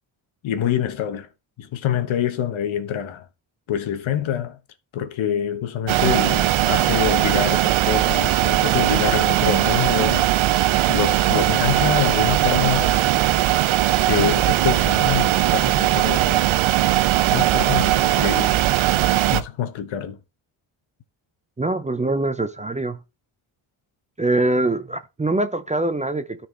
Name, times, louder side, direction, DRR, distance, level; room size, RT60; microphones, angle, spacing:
voice 1, 0.4-1.3 1.6-3.3 3.7-4.6 4.9-10.3 10.9-13.1 14.0-16.5 17.3-18.5 19.3-20.2, left 10 dB, 75° left, 1.1 m, -26 dB
sound 1, 5.9-19.4, right 14 dB, 80° right, 0.7 m, -19 dB
voice 2, 21.6-23.0 24.2-26.5, right 2 dB, 15° right, 0.6 m, -23 dB
12.5 x 4.3 x 3.2 m
cardioid pair, 110°, 48 cm